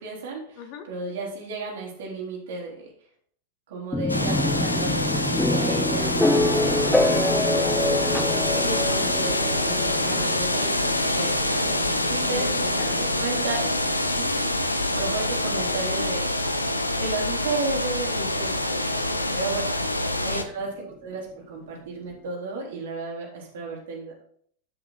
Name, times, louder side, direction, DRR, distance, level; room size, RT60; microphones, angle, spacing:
voice 1, 0.0-2.9 3.7-9.3 9.6-10.8 11.1-13.7 14.2-16.3 16.9-19.7 20.2-24.1, right 3 dB, 60° right, -2 dB, 3.6 m, -34 dB
sound 1, 3.9-17.7, left 1 dB, 5° left, 0.6 m, -27 dB
sound 2, 4.1-20.4, left 1 dB, 85° left, 0.8 m, -26 dB
voice 2, 12.1-13.2 19.3-19.4 19.7-20.2, left 7 dB, 45° left, 8 dB, 1.3 m, -42 dB
13.0 x 5.9 x 4.2 m, 0.62 s
figure-of-eight pair, 90°, 0 cm